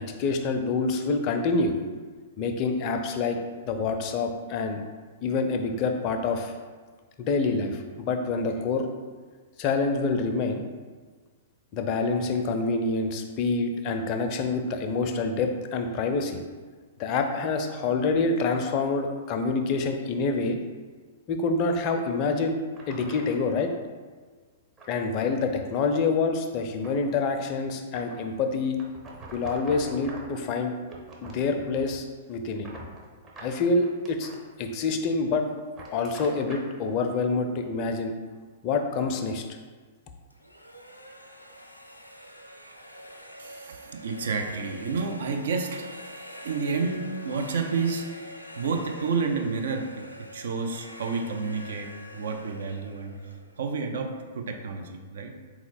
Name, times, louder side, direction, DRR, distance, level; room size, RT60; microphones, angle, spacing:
voice 1, 0.0-1.8 2.4-3.4 3.7-4.8 5.2-6.5 7.2-8.9 9.6-10.6 11.7-16.4 17.0-20.6 21.3-22.6 22.9-23.7 24.9-28.8 29.3-30.7 31.2-32.7 33.4-34.3 34.6-35.4 35.9-38.1 38.6-39.4, left 4 dB, 35° left, 5 dB, 0.5 m, -27 dB
sound 1, 22.1-22.2 22.7-23.5 24.8-25.3 25.7-25.9 26.4-27.2 27.9-28.3 28.8-30.4 30.8-32.1 32.4-34.4 35.6-36.7, right 2 dB, 20° right, 0.8 m, -45 dB
sound 2, 40.3-54.2, equal, 90° left, 0.4 m, -45 dB
voice 2, 43.4-46.0 46.4-48.1 48.6-55.3, right 4 dB, 60° right, 3 dB, 0.5 m, -30 dB
3.8 x 2.9 x 4.1 m, 1.5 s
figure-of-eight pair, 105°, 0 cm